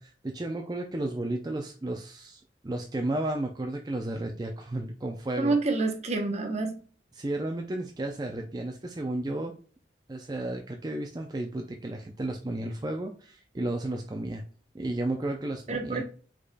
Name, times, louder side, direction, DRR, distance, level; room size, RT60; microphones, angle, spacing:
voice 1, 0.0-5.6 7.1-9.5 10.1-14.4 14.7-16.0, right 1 dB, 20° right, 3 dB, 0.4 m, -33 dB
voice 2, 5.4-6.8 15.7-16.0, right 3 dB, 35° right, 4 dB, 0.9 m, -28 dB
5.1 x 4.1 x 2.2 m, 0.40 s
head